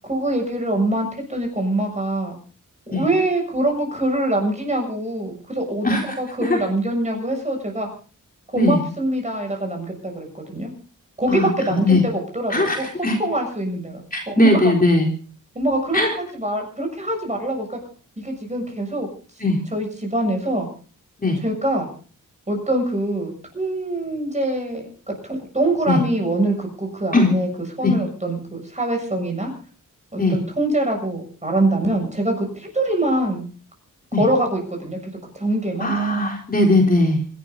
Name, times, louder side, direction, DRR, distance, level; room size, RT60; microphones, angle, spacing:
voice 1, 0.1-2.3 2.9-7.9 8.5-10.7 11.2-12.9 13.2-14.6 15.6-17.8 18.2-19.1 19.7-20.7 21.4-21.9 22.5-24.9 25.3-27.5 27.8-29.5 30.1-33.4 34.2-35.0 35.3-35.9, right 1 dB, 20° right, 3 dB, 7.2 m, -24 dB
voice 2, 5.8-6.2 6.4-6.6 8.6-8.8 11.3-12.0 12.5-13.2 14.1-15.1 15.9-16.1 19.4-19.6 21.2-21.4 25.9-26.0 27.1-27.3 27.8-27.9 30.2-30.4 34.1-34.2 35.8-37.2, left 2 dB, 25° left, 0 dB, 3.9 m, -19 dB
26.5 x 12.0 x 4.0 m, 0.41 s
wide cardioid pair, 135°, 32 cm